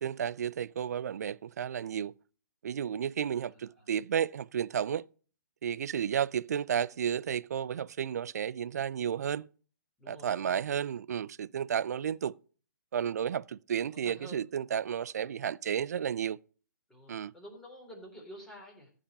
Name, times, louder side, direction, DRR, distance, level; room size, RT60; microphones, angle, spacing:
voice 1, 0.0-2.1 2.6-5.0 5.6-9.5 10.1-12.3 12.9-16.4 17.1-17.3, right 8 dB, 55° right, 0.4 m, -32 dB
voice 2, 3.3-3.9 10.0-10.6 13.9-14.5 16.9-18.9, equal, 5° left, 3.7 m, -50 dB
15.0 x 5.0 x 6.5 m
figure-of-eight pair, 135°, 10 cm